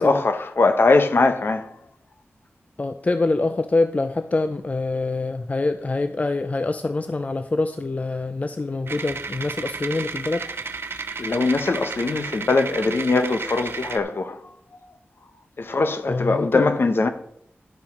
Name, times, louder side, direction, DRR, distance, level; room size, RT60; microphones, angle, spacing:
voice 1, 0.0-1.6 11.2-14.4 15.6-17.1, left 3 dB, 60° left, 1.0 m, -21 dB
voice 2, 2.8-10.5 16.1-16.7, left 3 dB, 35° left, 0.5 m, -25 dB
sound 1, 8.9-14.0, right 4 dB, 65° right, 0.6 m, -33 dB
11.5 x 5.7 x 5.2 m
cardioid pair, 60°, 4 cm